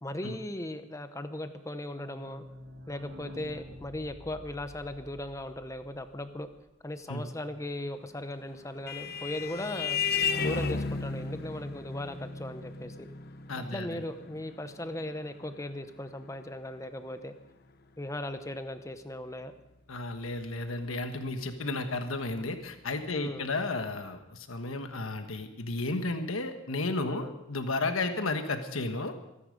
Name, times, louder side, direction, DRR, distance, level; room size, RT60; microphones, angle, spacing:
voice 1, 0.0-2.4 2.9-6.5 6.8-10.0 10.4-13.1 13.6-17.3 18.0-19.5 23.1-23.5 27.1-27.3, left 1 dB, 15° left, 9 dB, 0.9 m, -38 dB
sound 1, 1.6-7.1 7.4-7.5 7.7-7.8 8.1-8.2, left 1 dB, 70° right, 1.8 m, -49 dB
Vehicle horn car horn honking, 8.2-17.2, left 5 dB, 50° left, 0.8 m, -35 dB
voice 2, 13.5-14.0 19.9-29.1, left 2 dB, 85° left, 7 dB, 1.3 m, -33 dB
23.5 x 10.0 x 5.2 m, 0.91 s
head